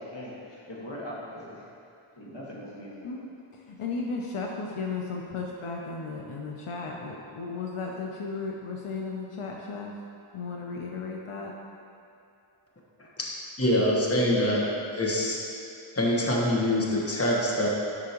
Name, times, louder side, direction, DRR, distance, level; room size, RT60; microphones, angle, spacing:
voice 1, 0.0-1.6 2.1-3.1, left 1 dB, 60° left, -6 dB, 1.7 m, -40 dB
voice 2, 3.5-9.9 10.3-11.5, left 4 dB, 90° left, -1 dB, 0.7 m, -35 dB
voice 3, 13.6-15.4 15.9-17.7, left 1 dB, 30° left, -3 dB, 1.2 m, -25 dB
9.8 x 6.1 x 3.0 m, 2.6 s
wide cardioid pair, 45°, 49 cm